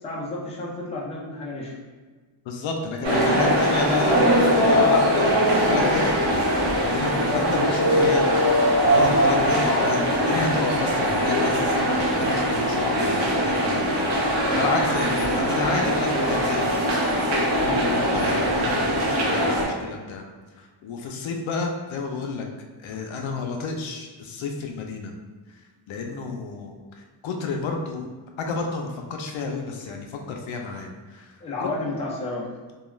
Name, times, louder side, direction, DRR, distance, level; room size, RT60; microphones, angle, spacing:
voice 1, 0.0-1.7 3.0-3.6 7.1-8.4 31.4-32.5, left 2 dB, 15° left, -5 dB, 0.4 m, -31 dB
voice 2, 2.5-6.2 6.7-7.2 7.7-8.2 8.9-20.2 20.6-22.4 22.8-25.1 25.9-26.8 27.2-28.0 28.4-31.7, left 4 dB, 70° left, 2 dB, 0.5 m, -31 dB
sound 1, 3.0-19.6, equal, 60° right, 0.8 m, -21 dB
2.3 x 2.3 x 3.0 m, 1.4 s
cardioid pair, 130°, 48 cm